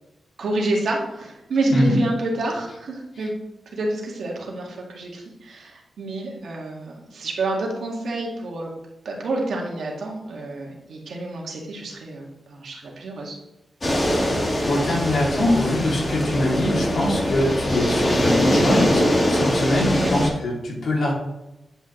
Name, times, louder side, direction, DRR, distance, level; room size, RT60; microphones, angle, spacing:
voice 1, 0.4-3.3 3.7-8.7 9.0-13.4 20.0-20.2, right 2 dB, 80° right, -2 dB, 2.0 m, -28 dB
sound 1, 13.8-20.3, equal, 30° left, 1.9 m, -22 dB
voice 2, 14.4-19.0 19.3-21.1, left 1 dB, 70° left, -3 dB, 2.9 m, -23 dB
9.8 x 5.6 x 3.2 m, 0.96 s
cardioid pair, 90°, 0 cm